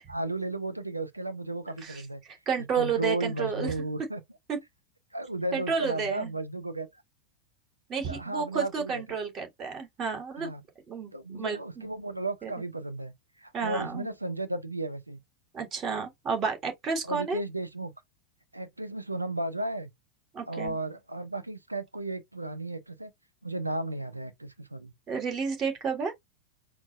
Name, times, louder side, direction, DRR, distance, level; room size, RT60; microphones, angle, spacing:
voice 1, 0.1-2.2 2.6-4.2 5.1-6.9 8.1-9.0 10.3-10.6 11.1-13.1 13.4-15.2 17.0-17.9 18.5-19.9 20.5-23.1 23.4-24.9, right 2 dB, 85° right, 0.6 m, -34 dB
voice 2, 2.5-3.7 4.5-4.6 5.5-6.3 7.9-10.5 10.9-11.9 12.4-12.5 13.5-14.1 15.5-17.4 20.3-20.8 25.1-26.1, right 6 dB, 25° right, 1.7 m, -31 dB
4.5 x 2.0 x 4.3 m
figure-of-eight pair, 90°, 0 cm